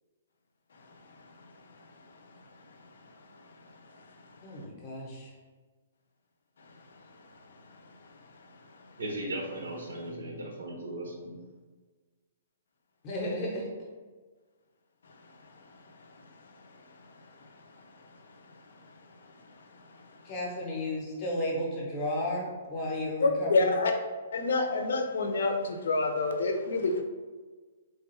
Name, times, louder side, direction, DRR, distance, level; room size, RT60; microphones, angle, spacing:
voice 1, 4.4-5.3 13.0-13.7 20.2-23.8, left 1 dB, 20° left, -3 dB, 0.7 m, -33 dB
voice 2, 9.0-11.3, right 1 dB, 90° right, 0 dB, 1.0 m, -37 dB
voice 3, 23.2-23.9 24.3-27.0, left 3 dB, 70° left, 5 dB, 0.5 m, -27 dB
3.3 x 2.3 x 4.2 m, 1.4 s
hypercardioid pair, 180°, 0 cm